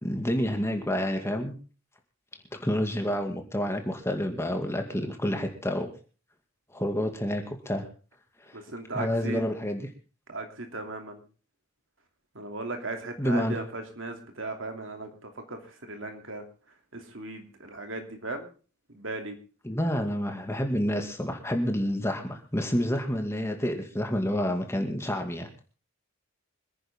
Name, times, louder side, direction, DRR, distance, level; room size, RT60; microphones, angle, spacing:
voice 1, 0.0-1.6 2.5-5.9 6.7-7.8 8.5-8.6 8.9-9.9 13.2-13.6 19.6-25.5, equal, 10° left, 4 dB, 2.2 m, -29 dB
voice 2, 8.5-9.4 10.3-11.2 12.3-16.4 16.9-18.5 18.9-19.4, right 2 dB, 60° right, 4 dB, 2.9 m, -37 dB
26.5 x 10.0 x 3.7 m, 0.37 s
head